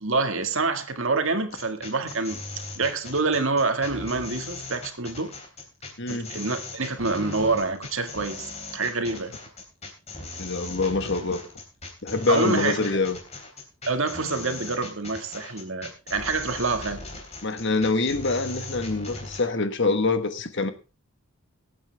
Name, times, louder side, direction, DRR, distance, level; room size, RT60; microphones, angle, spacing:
voice 1, 0.0-2.4 2.8-5.3 6.1-9.4 12.3-12.9 13.9-17.0, right 3 dB, 65° right, 1.7 m, -27 dB
sound 1, 1.5-19.5, left 3 dB, 30° left, 3.6 m, -39 dB
voice 2, 6.0-6.3 10.4-11.4 12.0-13.2 17.4-20.7, left 3 dB, 55° left, 1.3 m, -25 dB
22.5 x 8.8 x 3.4 m
head